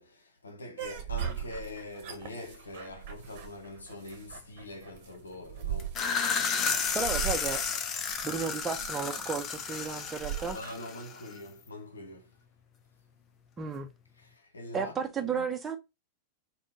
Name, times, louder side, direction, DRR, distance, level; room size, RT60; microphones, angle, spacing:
voice 1, 0.0-6.0 10.5-12.4 14.2-15.5, left 2 dB, 75° left, 0.9 m, -44 dB
sound 1, 0.8-10.7, right 9 dB, 50° right, 0.9 m, -39 dB
sound 2, 5.8-11.4, left 6 dB, 30° left, 0.6 m, -32 dB
voice 2, 6.9-7.6 8.2-10.6 13.6-13.9 14.7-15.8, right 5 dB, 20° right, 0.7 m, -33 dB
3.7 x 2.2 x 3.6 m
figure-of-eight pair, 90°, 0 cm